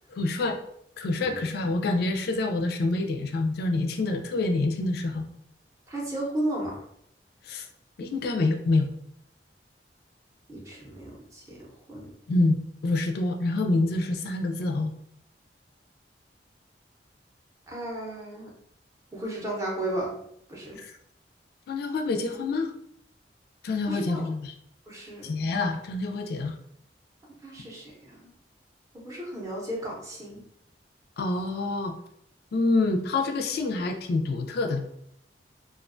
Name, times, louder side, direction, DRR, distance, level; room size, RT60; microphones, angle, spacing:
voice 1, 0.1-0.6 1.0-5.3 7.4-7.7 8.0-8.9 12.3-12.6 12.8-14.9 20.8-20.9 21.7-22.7 23.6-24.5 25.2-26.6 31.2-31.9 32.5-34.8, left 2 dB, 60° left, 4 dB, 0.3 m, -26 dB
voice 2, 5.9-6.8 10.5-11.6 11.9-12.1 17.7-18.5 19.1-20.1 20.5-20.8 23.9-24.3 24.9-25.3 27.4-28.3 28.9-30.4, right 1 dB, 20° right, -4 dB, 0.6 m, -34 dB
2.3 x 2.2 x 2.5 m, 0.73 s
head